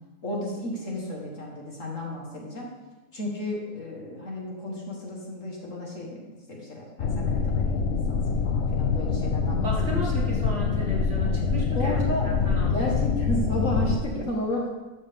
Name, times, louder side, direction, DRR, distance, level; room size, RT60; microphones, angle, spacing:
voice 1, 0.2-2.7 3.1-10.1 11.8-12.3 12.6-14.7, left 1 dB, 50° left, -2 dB, 1.9 m, -33 dB
sound 1, 7.0-14.0, left 5 dB, 85° left, 0.6 m, -25 dB
voice 2, 9.6-12.8, equal, 45° right, -4 dB, 2.3 m, -34 dB
12.5 x 6.5 x 3.6 m, 1.1 s
omnidirectional pair, 1.8 m